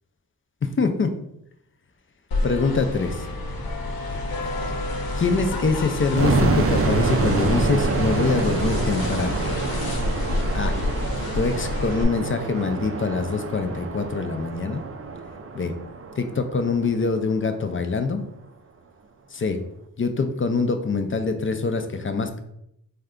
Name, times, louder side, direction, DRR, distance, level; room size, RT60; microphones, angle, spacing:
voice 1, 0.8-1.1 2.4-3.3 5.1-9.4 10.5-10.7 11.3-14.9 15.5-15.7 16.2-18.2 19.3-19.6 20.0-22.4, left 4 dB, 35° left, 7 dB, 0.4 m, -24 dB
sound 1, 2.3-12.0, left 2 dB, 85° left, 0.6 m, -29 dB
sound 2, 6.2-17.0, right 3 dB, 40° right, 0.4 m, -26 dB
3.5 x 2.2 x 3.6 m, 0.77 s
wide cardioid pair, 65°, 35 cm